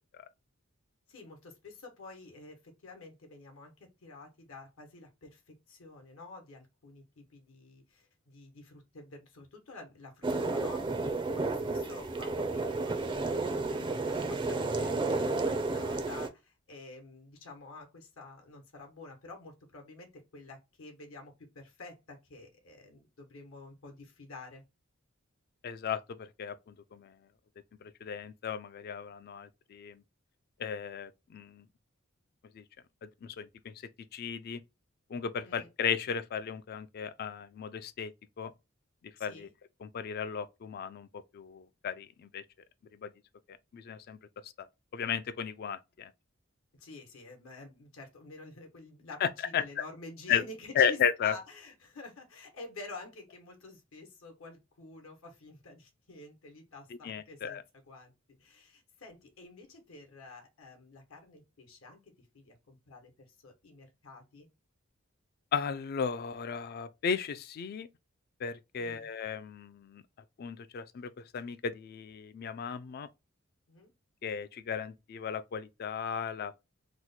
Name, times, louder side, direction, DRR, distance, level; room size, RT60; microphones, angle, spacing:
voice 1, 1.1-10.9 11.2-13.3 13.7-24.6 35.4-35.7 39.2-39.5 46.7-58.1 58.4-64.5 68.8-69.1 73.7-73.9, left 3 dB, 75° left, 1.0 m, -49 dB
sound 1, 10.2-16.3, right 3 dB, 25° right, 0.4 m, -32 dB
voice 2, 25.6-27.1 27.8-30.0 30.6-31.7 32.5-32.6 33.0-33.8 34.1-34.6 35.1-38.1 38.4-38.5 39.2-39.5 39.8-41.1 41.3-42.4 42.9-43.1 43.7-44.2 44.4-44.7 44.9-46.1 49.2-49.3 49.5-49.8 50.3-50.4 50.8-51.3 57.0-57.6 65.5-67.9 68.4-70.0 70.4-73.1 74.2-76.6, left 7 dB, 50° left, 0.3 m, -35 dB
3.0 x 2.1 x 3.8 m
head